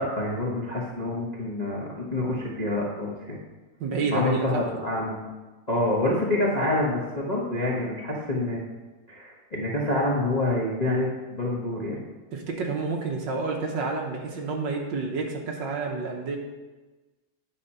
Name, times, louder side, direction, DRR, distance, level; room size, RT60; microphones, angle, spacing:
voice 1, 0.0-3.4 4.1-5.3 5.7-8.6 9.1-12.0, left 1 dB, 30° left, -4 dB, 0.7 m, -27 dB
voice 2, 3.8-4.6 12.3-16.4, right 3 dB, 65° right, 1 dB, 1.5 m, -29 dB
9.3 x 4.3 x 5.4 m, 1.2 s
omnidirectional pair, 2.3 m